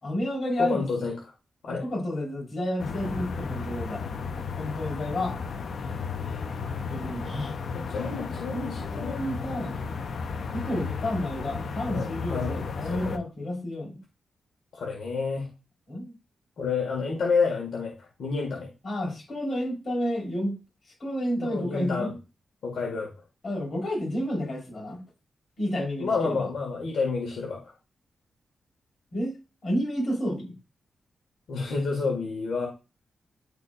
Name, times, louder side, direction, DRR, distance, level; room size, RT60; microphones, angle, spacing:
voice 1, 0.0-1.1 1.7-4.1 4.6-5.4 6.9-7.6 8.5-9.8 10.5-14.0 15.9-16.1 18.8-20.6 21.0-22.1 23.4-25.0 25.6-26.5 29.1-29.3 29.6-30.5, left 1 dB, 45° left, 4.1 m, -30 dB
voice 2, 0.6-1.1 1.6-1.8 7.7-9.2 11.5-12.6 12.9-13.2 14.7-15.5 16.6-18.7 21.4-22.1 22.6-23.1 26.0-27.7 31.5-32.7, left 4 dB, 85° left, 1.9 m, -29 dB
sound 1, 2.8-13.2, left 5 dB, 65° left, 0.7 m, -34 dB
10.5 x 4.2 x 2.5 m
wide cardioid pair, 120°, 0 cm